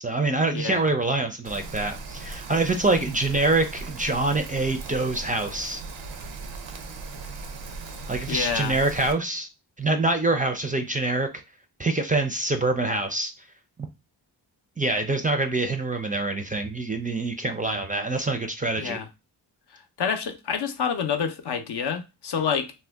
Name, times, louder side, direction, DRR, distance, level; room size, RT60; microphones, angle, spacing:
voice 1, 0.0-5.8 8.1-9.5 9.8-11.3 11.8-13.3 14.8-19.0, right 2 dB, 20° right, 0.4 m, -25 dB
voice 2, 0.5-0.9 8.3-8.8 18.8-19.1 19.7-22.7, left 7 dB, 65° left, 0.6 m, -28 dB
Rain, 1.4-9.1, right 3 dB, 85° right, 0.6 m, -38 dB
2.7 x 2.1 x 3.4 m
cardioid pair, 60°, 45 cm